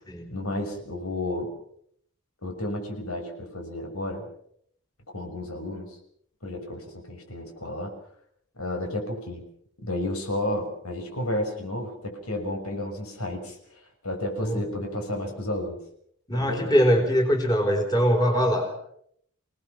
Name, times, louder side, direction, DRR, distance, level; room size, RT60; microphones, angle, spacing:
voice 1, 0.3-1.6 2.4-4.2 5.1-6.0 6.4-7.9 8.6-9.4 9.8-15.8 16.3-16.7, left 1 dB, 85° left, 4 dB, 6.2 m, -32 dB
voice 2, 16.3-18.8, equal, 15° left, 2 dB, 4.0 m, -22 dB
28.5 x 19.0 x 6.0 m, 0.68 s
head